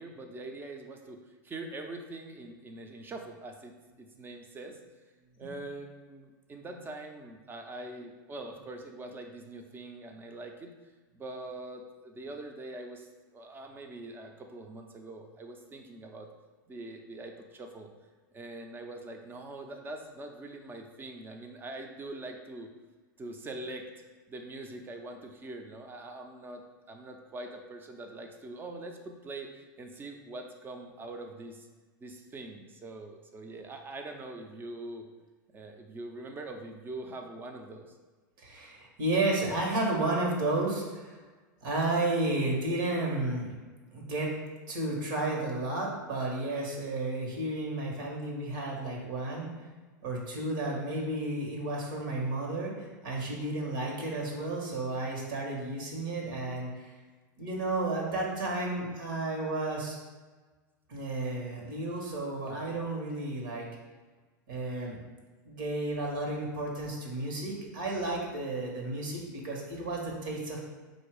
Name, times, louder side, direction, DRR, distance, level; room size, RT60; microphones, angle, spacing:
voice 1, 0.0-4.8 5.4-10.7 11.1-16.3 16.7-17.9 18.3-22.7 23.2-23.9 24.3-31.7 32.0-35.1 35.5-38.0, right 2 dB, 20° right, 4 dB, 0.6 m, -43 dB
voice 2, 38.4-41.2 41.6-43.5 43.9-44.4 44.7-49.5 50.0-56.9 57.4-59.9 60.9-63.7 64.5-65.0 65.4-70.7, right 2 dB, 70° right, -1 dB, 1.4 m, -32 dB
4.1 x 2.7 x 4.8 m, 1.3 s
hypercardioid pair, 105°, 11 cm